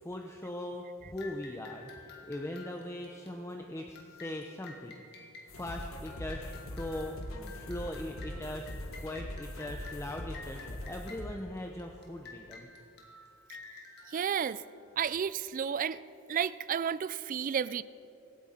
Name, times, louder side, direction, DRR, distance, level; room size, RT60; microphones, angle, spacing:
voice 1, 0.0-5.0 5.5-8.7 9.0-12.7, left 1 dB, 10° left, 3 dB, 0.6 m, -40 dB
sound 1, 1.2-15.3, left 4 dB, 50° left, 2.0 m, -52 dB
sound 2, 5.5-11.3, left 1 dB, 65° left, 1.2 m, -42 dB
voice 2, 14.1-14.6 15.0-16.0 16.3-17.8, right 8 dB, 40° right, 17 dB, 0.3 m, -32 dB
24.5 x 8.8 x 4.3 m, 2.8 s
head